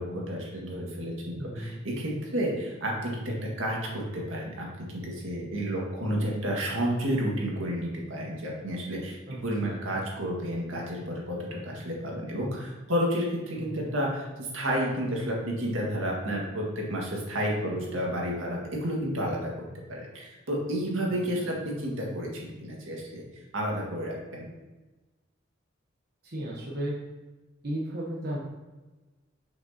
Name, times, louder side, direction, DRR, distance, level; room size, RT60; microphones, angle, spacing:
voice 1, 0.0-9.2 9.4-19.5 19.9-24.5, equal, 85° right, -2 dB, 1.8 m, -31 dB
voice 2, 1.4-1.8 9.3-9.9 13.6-14.1 21.4-21.5 26.2-27.0 27.6-28.4, right 1 dB, 55° right, -5 dB, 1.0 m, -35 dB
6.7 x 6.2 x 2.8 m, 1.2 s
head